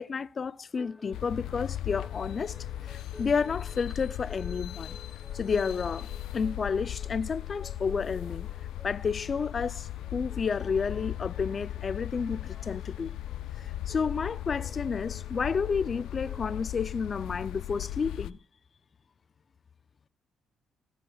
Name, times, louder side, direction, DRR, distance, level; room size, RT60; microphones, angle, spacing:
voice 1, 0.0-5.0 5.3-8.5 8.8-13.2 13.6-18.4, left 5 dB, 40° left, 0.5 m, -31 dB
sound 1, 0.7-16.8, left 1 dB, ahead, 1.4 m, -53 dB
sound 2, 1.1-18.3, left 13 dB, 85° left, 0.5 m, -37 dB
16.0 x 15.5 x 2.4 m
cardioid pair, 90°, 0 cm